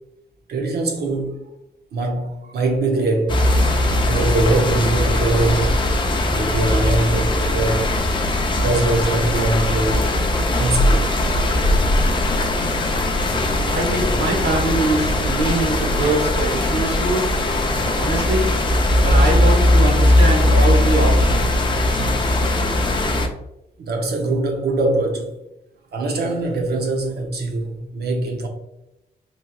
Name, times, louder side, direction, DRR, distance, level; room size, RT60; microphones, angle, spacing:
voice 1, 0.5-1.5 1.9-3.4 4.1-5.8 6.3-7.9 8.6-10.1 10.6-11.2 17.8-17.9 21.9-22.7 23.8-25.3 25.9-28.5, right 2 dB, 75° right, 0.7 m, -22 dB
sound 1, 3.3-23.3, left 1 dB, 30° left, 0.4 m, -19 dB
voice 2, 13.7-17.6 17.9-21.7, right 2 dB, 90° right, 1.2 m, -23 dB
3.2 x 2.9 x 2.3 m
wide cardioid pair, 135°, 17 cm